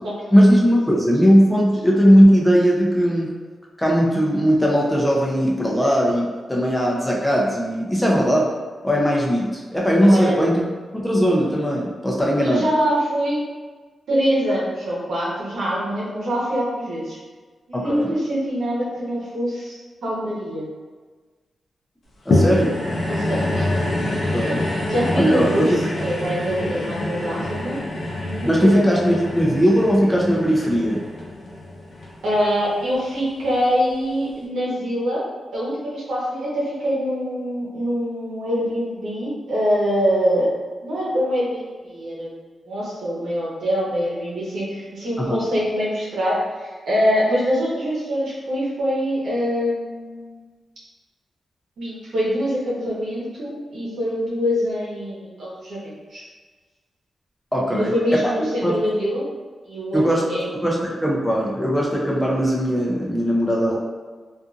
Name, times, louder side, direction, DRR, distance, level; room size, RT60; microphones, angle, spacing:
voice 1, 0.3-3.3 3.8-8.5 8.8-10.7 11.0-12.6 17.7-18.1 22.3-22.7 24.3-24.6 25.1-25.8 28.4-31.0 45.3-45.4 57.5-57.9 58.2-58.3 58.6-58.7 59.9-60.3 60.6-63.8, equal, 10° left, -4 dB, 0.6 m, -18 dB
voice 2, 10.1-10.4 12.4-13.4 14.1-17.2 17.7-20.7 23.1-23.7 24.4-25.7 26.0-27.7 28.2-29.2 32.2-35.2 35.5-40.5 40.8-42.3 42.7-50.4 51.8-56.2 57.7-59.3 59.6-60.0 60.3-60.7, equal, 85° right, -6 dB, 0.9 m, -24 dB
sound 1, 22.3-32.8 33.4-33.5, left 1 dB, 60° left, 0.5 m, -26 dB
2.6 x 2.5 x 2.4 m, 1.4 s
cardioid pair, 95°, 0 cm